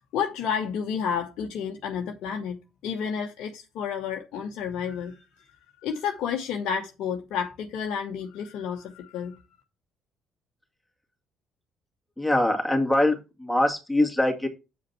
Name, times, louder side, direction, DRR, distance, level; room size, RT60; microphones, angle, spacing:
voice 1, 0.1-2.6 2.8-5.4 5.8-9.4, left 7 dB, 60° left, 0.9 m, -31 dB
voice 2, 12.2-14.5, left 1 dB, 5° left, 2.3 m, -23 dB
8.2 x 5.0 x 4.2 m
figure-of-eight pair, 45°, 0 cm